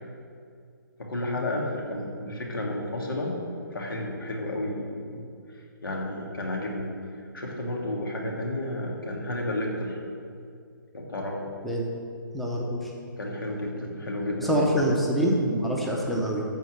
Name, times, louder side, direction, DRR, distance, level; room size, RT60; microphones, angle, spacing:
voice 1, 1.1-3.4 3.7-5.3 5.5-6.9 7.2-10.0 10.9-11.5 13.2-14.6, left 1 dB, 85° left, -1 dB, 3.0 m, -32 dB
voice 2, 12.3-12.9 14.4-16.4, equal, ahead, -2 dB, 0.7 m, -25 dB
13.5 x 4.5 x 7.9 m, 2.3 s
hypercardioid pair, 170°, 11 cm